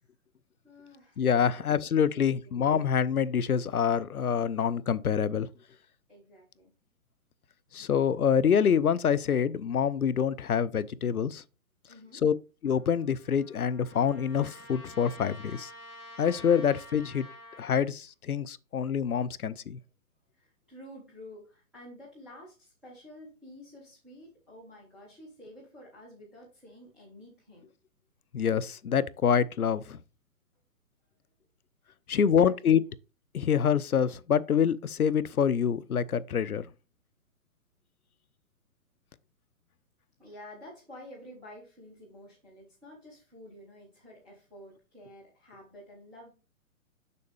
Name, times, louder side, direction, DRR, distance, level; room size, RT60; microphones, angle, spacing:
voice 1, 0.6-2.5 6.1-6.7 11.9-12.2 20.3-27.7 32.1-32.8 40.2-46.3, left 1 dB, ahead, 0.4 m, -50 dB
voice 2, 1.2-5.5 7.7-11.4 12.2-12.3 12.6-15.7 16.2-17.3 17.6-19.8 28.3-30.0 32.1-32.8 33.3-36.7, left 7 dB, 80° left, 0.7 m, -26 dB
Trumpet, 12.6-17.8, left 1 dB, 40° left, 3.7 m, -49 dB
6.8 x 6.4 x 3.3 m
figure-of-eight pair, 125°, 43 cm